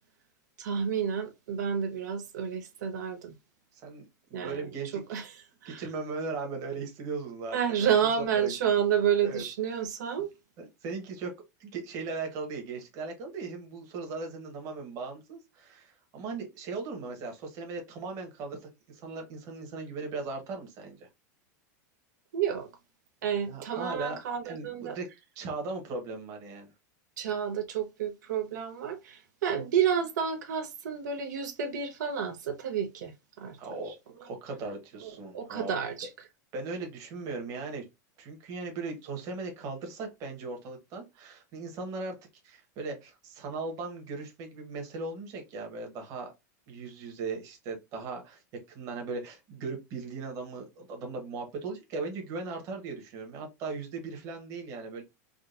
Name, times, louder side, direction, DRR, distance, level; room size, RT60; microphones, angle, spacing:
voice 1, 0.6-3.3 4.3-5.8 7.5-10.3 22.3-22.7 23.2-25.0 27.2-33.1 33.4-33.6 33.9-34.0 35.0-36.1, right 8 dB, 90° right, 0.7 m, -30 dB
voice 2, 3.7-4.0 4.3-5.0 5.6-8.5 8.8-8.9 9.2-9.4 10.6-11.3 11.6-21.1 23.5-25.1 25.3-26.7 33.6-33.9 34.2-35.7 36.5-37.8 38.2-42.2 42.4-46.3 46.7-48.4 48.7-55.0, right 4 dB, 35° right, 1.1 m, -38 dB
3.7 x 2.2 x 2.4 m
supercardioid pair, 155°, 9 cm